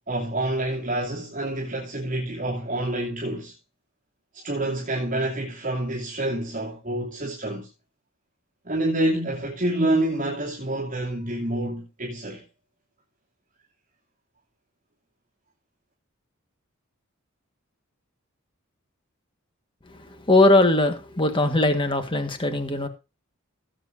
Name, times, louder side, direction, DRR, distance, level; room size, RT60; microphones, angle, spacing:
voice 1, 0.1-3.5 4.3-7.7 8.6-12.4, right 1 dB, 40° right, 2.7 m, -27 dB
voice 2, 20.3-22.9, left 2 dB, 25° left, 1.6 m, -20 dB
18.0 x 7.8 x 2.7 m
head